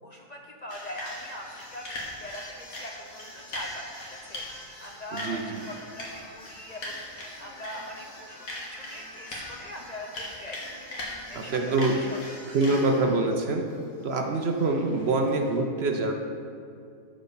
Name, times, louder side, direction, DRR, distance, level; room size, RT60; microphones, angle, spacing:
voice 1, 0.0-10.9 11.3-12.2 12.5-12.6, equal, 40° left, 0 dB, 0.6 m, -42 dB
sound 1, 0.7-15.6, left 1 dB, 85° left, 2.1 m, -41 dB
voice 2, 5.1-5.4 11.3-12.0 12.5-13.8 14.0-16.1, right 2 dB, 55° right, 4 dB, 0.9 m, -25 dB
12.0 x 5.1 x 5.7 m, 2.4 s
omnidirectional pair, 1.4 m